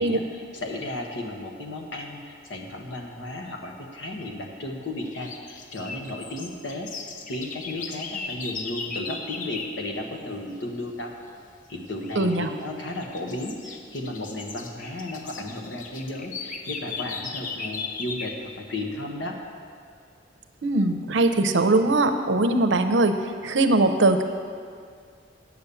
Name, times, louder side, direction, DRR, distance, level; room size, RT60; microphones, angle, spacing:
voice 1, 0.0-11.1 11.7-19.4, left 1 dB, 75° left, 2 dB, 1.2 m, -34 dB
sound 1, 5.1-9.8 12.0-12.4 12.8-18.4, left 4 dB, 45° left, 0.7 m, -37 dB
voice 2, 12.2-12.5 20.6-23.1 23.4-24.2, right 2 dB, 80° right, 7 dB, 0.7 m, -21 dB
8.9 x 6.9 x 6.9 m, 2.2 s
head